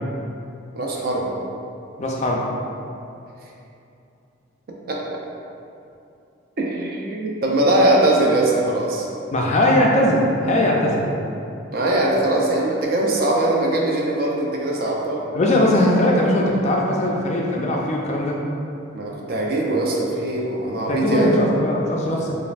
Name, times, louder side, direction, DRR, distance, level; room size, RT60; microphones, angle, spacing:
voice 1, 0.8-1.4 4.9-5.0 6.6-9.1 11.7-15.2 18.9-21.4, right 1 dB, 45° right, -2 dB, 0.4 m, -21 dB
voice 2, 2.0-2.5 9.3-11.1 15.3-18.4 20.9-22.4, left 1 dB, 35° left, -2 dB, 0.3 m, -20 dB
5.2 x 2.4 x 2.4 m, 2.7 s
head